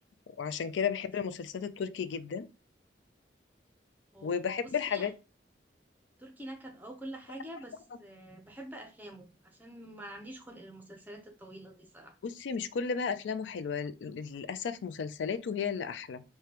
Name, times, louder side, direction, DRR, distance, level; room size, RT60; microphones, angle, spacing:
voice 1, 0.4-2.5 4.2-5.1 12.2-16.2, left 6 dB, 85° left, 0.4 m, -33 dB
voice 2, 4.1-5.1 6.2-12.2, right 1 dB, 10° right, 0.6 m, -46 dB
4.8 x 2.2 x 2.9 m
head